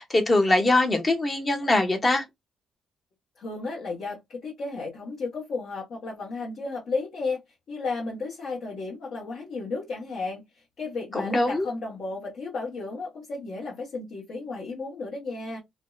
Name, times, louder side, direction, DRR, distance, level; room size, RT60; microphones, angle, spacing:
voice 1, 0.0-2.2 11.1-11.7, left 2 dB, 30° left, 0.8 m, -22 dB
voice 2, 3.4-7.4 7.7-10.4 10.8-15.6, left 3 dB, 60° left, 1.0 m, -33 dB
2.6 x 2.1 x 2.3 m
cardioid pair, 90°, 0 cm